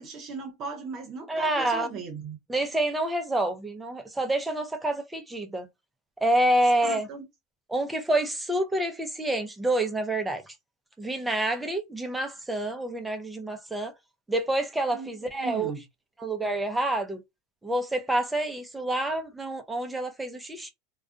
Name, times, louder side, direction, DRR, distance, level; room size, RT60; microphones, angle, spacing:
voice 1, 0.0-2.4 6.8-7.2 14.9-15.8, right 4 dB, 45° right, 0.8 m, -38 dB
voice 2, 1.3-2.0 2.5-5.7 6.2-7.1 7.7-10.5 11.0-13.9 14.3-15.7 16.2-17.2 17.6-20.7, right 1 dB, 10° right, 0.6 m, -28 dB
2.4 x 2.3 x 2.5 m
supercardioid pair, 115°, 0 cm